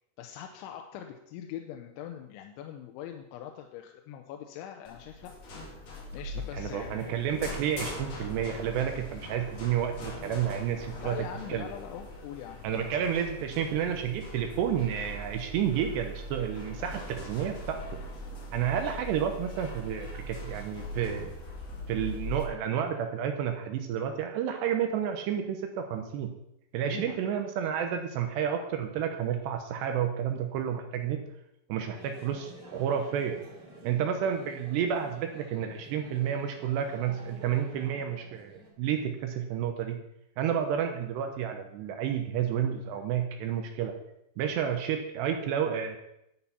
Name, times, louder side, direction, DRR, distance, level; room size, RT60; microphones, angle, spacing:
voice 1, 0.2-5.3 6.1-7.2 11.0-13.1 26.9-27.2, left 10 dB, 85° left, 4 dB, 3.1 m, -42 dB
sound 1, 4.8-22.4, left 1 dB, 45° left, 2.7 m, -41 dB
voice 2, 6.5-11.2 11.5-11.7 12.6-17.8 18.5-21.3 21.9-26.3 26.7-31.2 31.7-33.4 33.8-40.0 40.4-43.9 44.4-46.0, right 8 dB, 80° right, 5 dB, 2.8 m, -30 dB
sound 2, 31.9-38.7, right 2 dB, 35° right, 1.8 m, -50 dB
11.0 x 8.6 x 5.8 m, 0.81 s
omnidirectional pair, 5.4 m